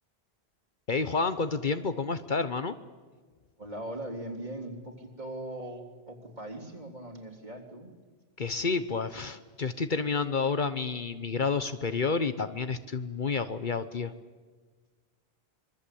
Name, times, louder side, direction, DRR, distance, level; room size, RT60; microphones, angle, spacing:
voice 1, 0.9-2.8 8.4-14.1, left 4 dB, 50° left, 11 dB, 1.1 m, -30 dB
voice 2, 3.6-7.9, right 1 dB, 45° right, 0 dB, 3.8 m, -40 dB
25.5 x 23.5 x 8.6 m, 1.4 s
omnidirectional pair, 1.0 m